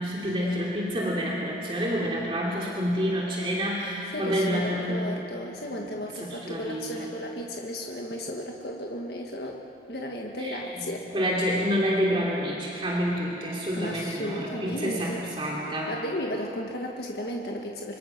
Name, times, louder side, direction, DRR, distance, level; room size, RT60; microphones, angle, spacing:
voice 1, 0.0-5.1 6.2-7.1 10.4-10.6 11.1-15.9, equal, 30° right, -3 dB, 3.0 m, -28 dB
voice 2, 4.1-9.6 9.9-11.1 13.7-15.2 15.9-18.0, equal, 65° left, 0 dB, 1.7 m, -34 dB
26.0 x 23.5 x 6.0 m, 2.7 s
head